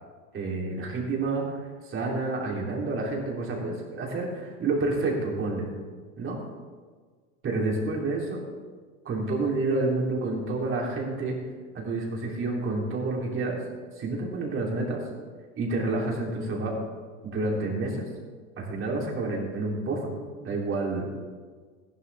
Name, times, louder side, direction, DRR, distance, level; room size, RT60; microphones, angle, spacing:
voice 1, 0.3-1.4 1.8-5.7 6.2-6.4 7.4-8.4 9.0-11.3 11.7-13.6 14.0-15.0 15.6-16.7 17.2-18.1 18.6-20.1 20.4-21.1, right 3 dB, 30° right, -1 dB, 3.4 m, -29 dB
14.5 x 11.5 x 3.5 m, 1.5 s
hypercardioid pair, 105°, 42 cm